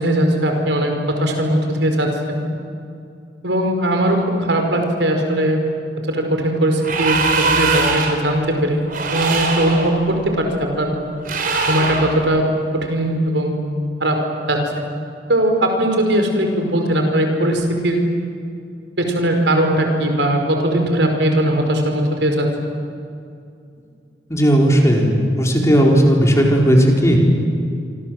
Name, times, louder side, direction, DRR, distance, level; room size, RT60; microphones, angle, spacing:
voice 1, 0.0-2.4 3.4-5.6 6.1-8.8 9.1-10.5 10.8-10.9 11.7-12.5 12.7-13.6 14.0-14.2 14.5-14.8 15.3-18.0 19.0-22.7, right 1 dB, 85° right, 4 dB, 5.0 m, -19 dB
sound 1, 6.8-8.3 8.9-9.9 11.2-12.2, right 4 dB, 50° right, 4.0 m, -21 dB
voice 2, 24.3-27.2, equal, 15° left, 0 dB, 4.3 m, -14 dB
28.0 x 25.0 x 7.8 m, 2.5 s
head